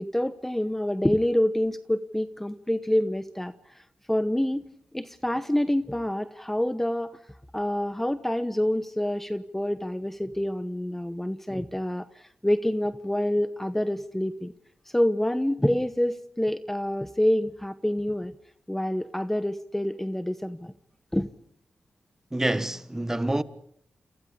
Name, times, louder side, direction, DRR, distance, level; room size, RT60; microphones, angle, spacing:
voice 1, 0.0-3.8 4.1-4.7 4.9-7.1 7.5-14.5 14.9-18.3 18.7-20.7 21.1-21.3, left 1 dB, 10° left, 1.0 m, -27 dB
voice 2, 22.3-23.4, right 1 dB, 15° right, 1.3 m, -27 dB
28.5 x 27.5 x 5.2 m
cardioid pair, 75°, 3 cm